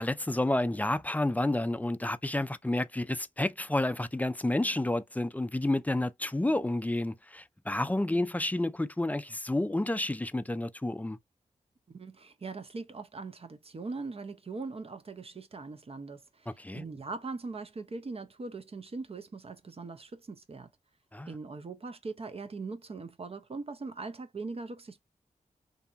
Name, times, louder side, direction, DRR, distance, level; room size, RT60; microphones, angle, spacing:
voice 1, 0.0-11.2 16.5-16.8 21.1-21.3, left 1 dB, 10° left, 0.4 m, -30 dB
voice 2, 11.9-20.7 21.3-25.0, right 3 dB, 45° right, 0.6 m, -41 dB
2.7 x 2.5 x 2.4 m
cardioid pair, 40°, 14 cm